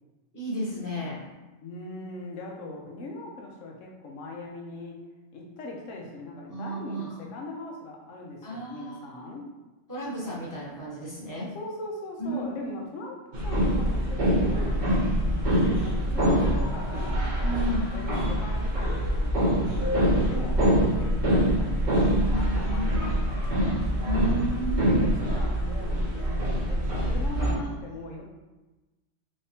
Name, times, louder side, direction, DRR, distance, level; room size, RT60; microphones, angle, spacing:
voice 1, 0.3-1.2 6.5-7.3 8.4-9.3 9.9-11.5 12.2-12.7 15.5-15.6 16.0-16.2 17.4-17.8 21.9-23.2 24.0-24.8, right 1 dB, 15° left, -8 dB, 1.1 m, -33 dB
voice 2, 1.6-5.0 5.3-9.5 11.4-13.2 13.4-17.3 17.6-23.9 24.8-28.2, left 2 dB, 80° left, -1 dB, 1.1 m, -40 dB
sound 1, 13.3-27.5, equal, 45° right, 0.8 m, -25 dB
3.4 x 3.3 x 2.7 m, 1.1 s
omnidirectional pair, 1.3 m